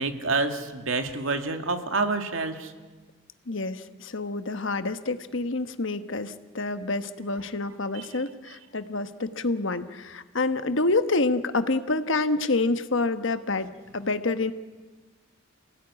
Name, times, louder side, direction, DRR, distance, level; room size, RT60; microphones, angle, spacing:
voice 1, 0.0-2.7 7.9-8.1, right 3 dB, 70° right, 6 dB, 2.2 m, -28 dB
voice 2, 3.5-14.5, left 3 dB, 65° left, 10 dB, 1.2 m, -27 dB
28.5 x 17.5 x 9.8 m, 1.3 s
head